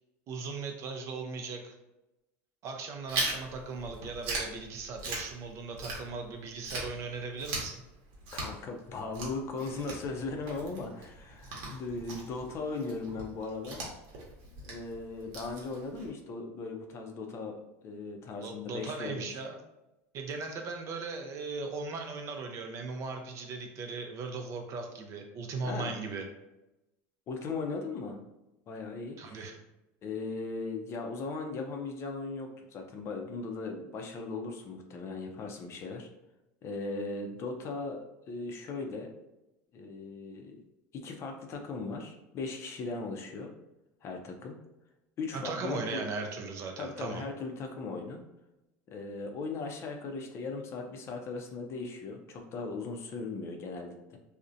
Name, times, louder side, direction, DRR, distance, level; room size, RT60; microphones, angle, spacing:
voice 1, 0.3-1.7 2.6-7.8 18.4-19.6 20.1-26.3 29.2-29.6 45.3-47.3, right 4 dB, 45° right, 4 dB, 0.5 m, -38 dB
Chewing mastication, 3.1-6.3 6.6-16.1, right 2 dB, 65° right, 0.8 m, -39 dB
voice 2, 8.3-13.8 14.6-19.3 25.6-26.0 27.3-28.2 28.7-29.5 30.0-36.1 36.6-39.1 39.7-40.6 40.9-43.5 44.0-44.6 45.2-46.0 46.8-48.2 48.9-54.2, left 3 dB, 40° left, 3 dB, 0.4 m, -38 dB
2.4 x 2.1 x 2.6 m, 0.94 s
supercardioid pair, 115°, 7 cm